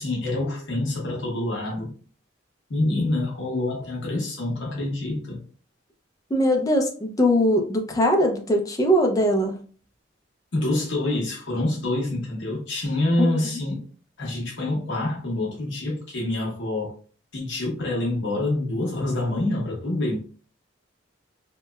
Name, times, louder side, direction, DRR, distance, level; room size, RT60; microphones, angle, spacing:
voice 1, 0.0-1.9 2.7-5.4 10.5-13.8 14.2-16.9 17.3-20.2, left 2 dB, 70° left, 0.7 m, -26 dB
voice 2, 6.3-9.6 13.2-13.4, equal, 20° left, 0.4 m, -21 dB
2.9 x 2.1 x 2.2 m
head